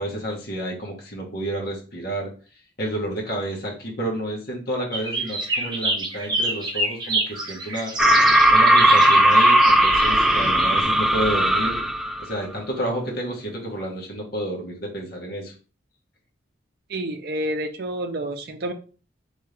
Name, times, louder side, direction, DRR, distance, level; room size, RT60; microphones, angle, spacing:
voice 1, 0.0-2.3 2.8-11.8 12.2-15.5, right 1 dB, 55° left, -1 dB, 1.4 m, -30 dB
sound 1, 4.9-10.8, right 2 dB, 25° right, 0.8 m, -28 dB
sound 2, 8.0-12.2, right 1 dB, ahead, 0.4 m, -17 dB
voice 2, 16.9-18.7, right 1 dB, 55° right, 6 dB, 0.5 m, -29 dB
3.6 x 3.5 x 3.3 m, 0.37 s
head